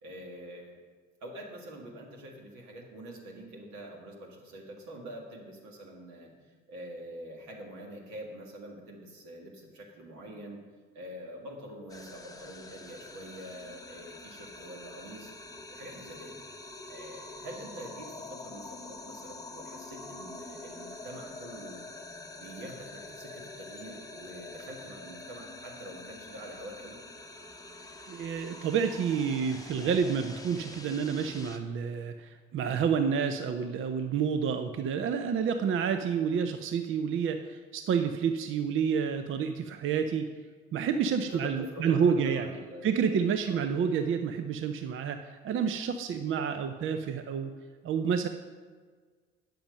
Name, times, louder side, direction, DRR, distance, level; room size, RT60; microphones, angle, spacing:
voice 1, 0.0-0.8 1.2-10.6 10.9-15.3 15.7-16.3 16.9-21.8 22.4-27.0 41.2-42.8 43.5-43.6, right 1 dB, 60° right, 0 dB, 2.0 m, -45 dB
sound 1, 11.9-31.6, left 2 dB, 10° left, 0.9 m, -46 dB
voice 2, 28.1-40.3 40.7-42.5 42.8-47.5 47.8-48.3, right 6 dB, 40° right, 8 dB, 0.6 m, -29 dB
9.1 x 6.9 x 5.3 m, 1.5 s
figure-of-eight pair, 50°, 31 cm